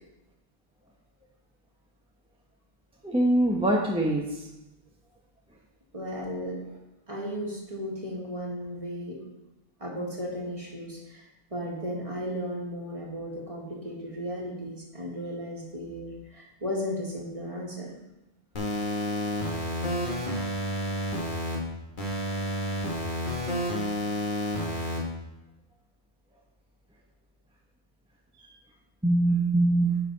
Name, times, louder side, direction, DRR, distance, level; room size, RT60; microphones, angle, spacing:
voice 1, 3.0-4.3 29.0-30.0, right 1 dB, 5° right, -2 dB, 0.8 m, -23 dB
voice 2, 5.9-6.6 7.1-9.2 9.8-18.0, equal, 30° right, -3 dB, 1.9 m, -35 dB
sound 1, 18.5-21.5 22.0-25.0, equal, 50° left, 1.8 m, -30 dB
10.5 x 5.8 x 4.0 m, 0.95 s
omnidirectional pair, 1.1 m